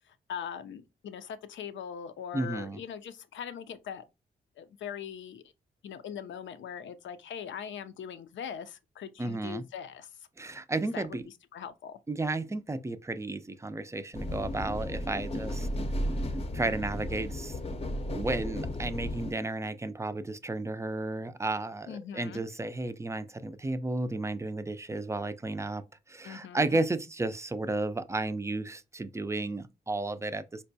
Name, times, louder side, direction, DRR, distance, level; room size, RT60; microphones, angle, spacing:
voice 1, 0.1-4.0 4.6-5.4 5.8-10.3 10.9-12.0 21.9-22.4 26.2-26.8, left 8 dB, 80° left, 0.5 m, -41 dB
voice 2, 2.3-2.8 9.2-9.6 10.4-11.2 12.1-15.7 16.5-17.6 18.1-25.8 26.1-30.6, right 2 dB, 15° right, 0.4 m, -33 dB
sound 1, 14.1-19.3, left 1 dB, 30° left, 0.6 m, -34 dB
4.4 x 2.1 x 2.7 m
cardioid pair, 65°, 19 cm